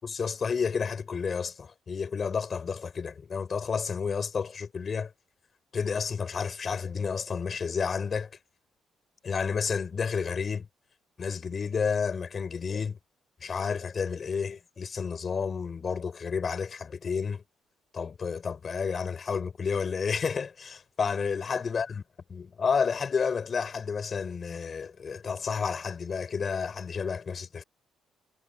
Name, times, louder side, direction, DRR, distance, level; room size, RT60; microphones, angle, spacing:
voice 1, 0.0-5.1 5.7-8.3 9.2-10.7 11.2-13.0 13.4-17.4 17.9-22.0 22.3-27.6, left 6 dB, 45° left, 5.3 m, -31 dB
cardioid pair, 90°, 0 cm